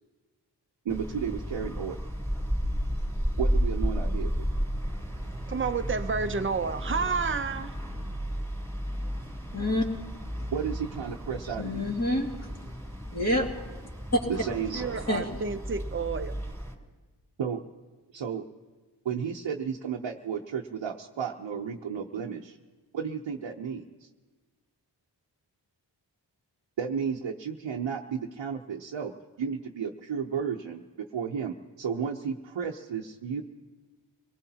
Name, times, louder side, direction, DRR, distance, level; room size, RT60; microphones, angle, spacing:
voice 1, 0.8-2.0 3.4-4.5 10.5-11.9 14.3-15.0 17.4-17.6 18.1-18.5 19.0-22.6 22.9-23.8 26.8-29.1 29.4-33.4, right 7 dB, 80° right, 0 dB, 0.8 m, -33 dB
sound 1, 0.9-16.7, equal, 5° left, 3.4 m, -33 dB
voice 2, 5.5-7.7 14.7-16.3, right 5 dB, 30° right, 9 dB, 0.7 m, -30 dB
voice 3, 9.5-9.8 11.6-12.3 13.1-13.5 14.1-14.2 15.1-15.4, left 1 dB, 35° left, -1 dB, 2.4 m, -26 dB
25.5 x 19.0 x 2.9 m, 1.3 s
cardioid pair, 60°, 44 cm